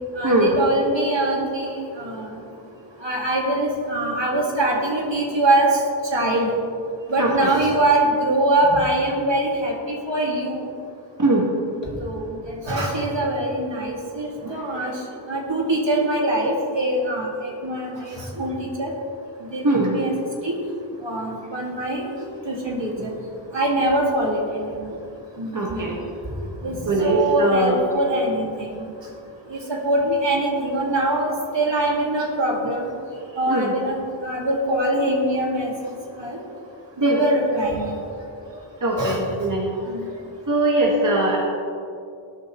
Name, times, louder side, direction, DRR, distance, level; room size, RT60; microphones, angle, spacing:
voice 1, 0.2-2.3 3.0-5.8 6.1-6.5 7.1-10.7 12.0-14.9 15.3-18.9 19.4-19.6 19.9-20.1 20.4-20.5 21.0-22.1 22.5-23.1 23.5-24.9 25.4-26.0 26.6-28.9 29.5-32.9 33.4-34.0 34.2-35.7 36.2-36.4 37.0-37.9 39.0-39.2 39.9-40.1, right 1 dB, 60° right, -2 dB, 2.5 m, -23 dB
voice 2, 7.2-7.5 11.2-11.5 14.4-14.9 19.6-20.0 23.0-23.1 25.5-25.9 26.9-27.8 33.5-33.8 37.0-37.2 38.8-39.7 40.5-41.4, right 2 dB, 40° right, -3 dB, 1.9 m, -21 dB
18.0 x 9.4 x 3.2 m, 2.6 s
cardioid pair, 40°, 48 cm